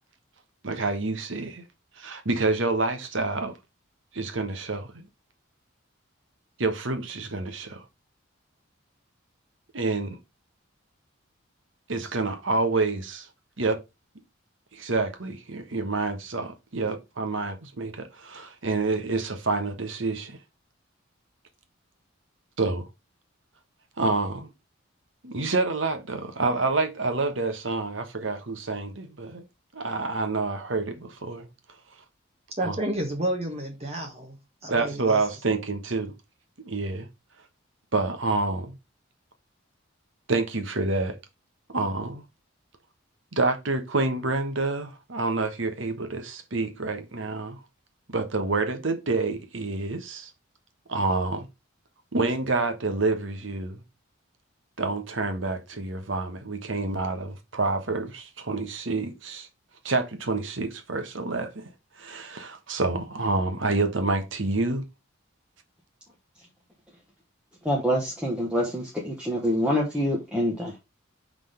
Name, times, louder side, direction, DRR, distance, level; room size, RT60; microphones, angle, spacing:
voice 1, 0.6-1.6 2.0-3.5 4.1-5.0 6.6-7.8 9.7-10.2 11.9-13.3 13.6-13.8 14.7-20.4 22.6-22.9 24.0-24.5 25.2-29.4 29.7-31.5 32.6-32.8 34.7-36.1 36.6-37.1 37.9-38.8 40.3-41.2 41.7-42.2 43.3-47.6 48.1-50.3 50.9-51.5 52.1-53.8 54.8-59.5 59.8-61.7 62.0-64.8, right 3 dB, 65° right, 1.2 m, -28 dB
voice 2, 32.6-34.4 34.6-35.2, right 1 dB, 30° right, 1.3 m, -30 dB
voice 3, 67.6-70.8, equal, 5° right, 1.2 m, -26 dB
5.8 x 3.8 x 5.0 m
head